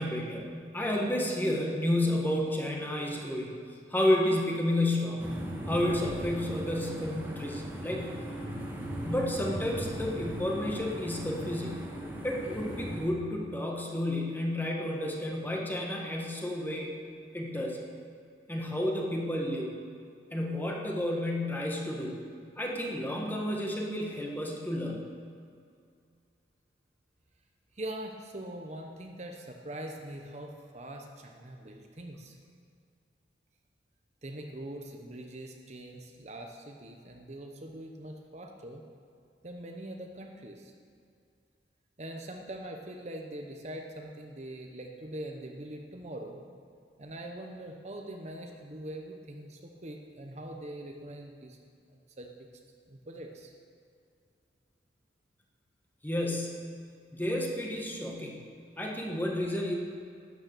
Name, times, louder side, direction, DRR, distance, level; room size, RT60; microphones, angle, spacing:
voice 1, 0.0-3.5 3.9-5.3 5.7-8.1 9.0-11.8 12.2-16.9 17.3-17.8 18.5-19.7 20.3-22.2 22.6-25.1 56.0-56.7 57.1-58.4 58.8-59.8, left 1 dB, 10° left, 0 dB, 1.5 m, -31 dB
sound 1, 5.2-13.0, equal, 10° right, 1.6 m, -38 dB
voice 2, 27.7-32.4 34.2-38.8 39.4-40.7 42.0-46.4 47.0-51.6 51.9-52.3 52.9-53.5, right 1 dB, 35° right, 3 dB, 0.9 m, -43 dB
12.0 x 9.5 x 6.7 m, 2.3 s
head